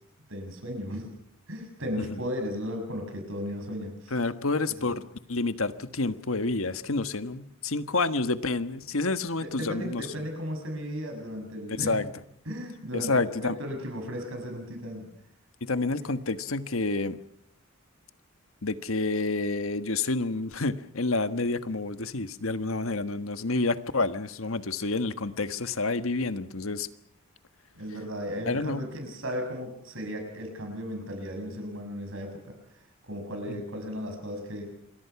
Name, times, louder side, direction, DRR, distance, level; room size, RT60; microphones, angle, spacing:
voice 1, 0.3-1.1 1.5-4.2 4.6-4.9 9.4-12.1 12.5-15.1 27.8-32.4 33.1-34.6, equal, 65° right, 4 dB, 6.9 m, -35 dB
voice 2, 4.1-10.0 11.8-12.1 12.9-13.6 15.7-17.2 18.6-26.9 28.5-28.8 33.5-33.6, left 3 dB, 75° left, 11 dB, 1.4 m, -29 dB
28.0 x 22.5 x 5.9 m, 0.69 s
head